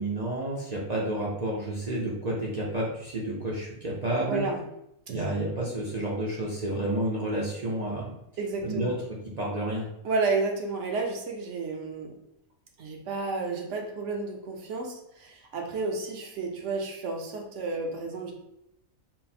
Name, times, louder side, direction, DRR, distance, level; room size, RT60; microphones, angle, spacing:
voice 1, 0.0-4.4 5.1-8.1 8.6-8.9 9.4-9.9, right 1 dB, 45° right, -4 dB, 0.5 m, -30 dB
voice 2, 4.3-4.6 5.1-5.4 8.4-9.0 10.0-12.1 12.8-18.3, right 3 dB, 65° right, 1 dB, 1.0 m, -31 dB
4.0 x 2.1 x 4.1 m, 0.80 s
omnidirectional pair, 1.4 m